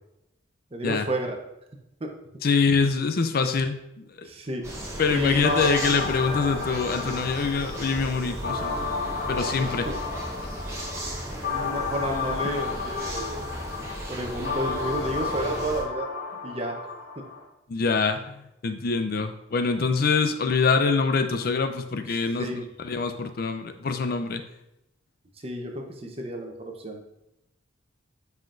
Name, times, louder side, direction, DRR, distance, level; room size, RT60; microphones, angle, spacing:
voice 1, 0.7-1.4 2.0-2.1 4.2-4.6 5.1-5.7 9.6-9.9 11.5-13.4 14.1-16.1 16.4-16.9 22.4-22.7 25.4-27.0, right 1 dB, 30° right, 3 dB, 0.8 m, -31 dB
voice 2, 2.4-4.3 5.0-9.0 9.3-9.9 17.7-24.4, left 4 dB, 50° left, 8 dB, 0.4 m, -25 dB
sound 1, 4.6-15.8, right 1 dB, 15° right, 1.1 m, -36 dB
sound 2, 5.4-17.4, left 4 dB, 65° left, 2.5 m, -33 dB
7.5 x 5.7 x 2.5 m, 0.87 s
head